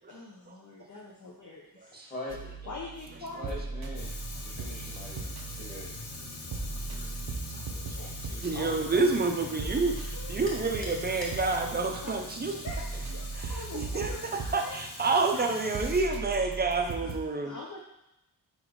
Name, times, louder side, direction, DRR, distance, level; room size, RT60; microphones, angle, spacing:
voice 1, 0.1-2.0 2.6-3.6 7.9-9.1 9.4-10.5 12.0-12.1 12.6-14.3 14.6-14.8 15.0-15.6 17.0-17.1 17.4-17.8, left 3 dB, 50° left, -2 dB, 0.8 m, -44 dB
voice 2, 1.9-2.4 3.4-4.1 4.4-5.9, left 1 dB, 20° left, -5 dB, 2.0 m, -42 dB
sound 1, 2.3-17.2, right 3 dB, 70° right, 0.8 m, -39 dB
Fire, 3.9-16.0, left 3 dB, 90° left, 1.0 m, -43 dB
voice 3, 8.3-12.6 13.3-17.6, right 3 dB, 25° right, 3 dB, 0.6 m, -29 dB
4.9 x 4.1 x 4.7 m, 0.86 s
wide cardioid pair, 145°, 39 cm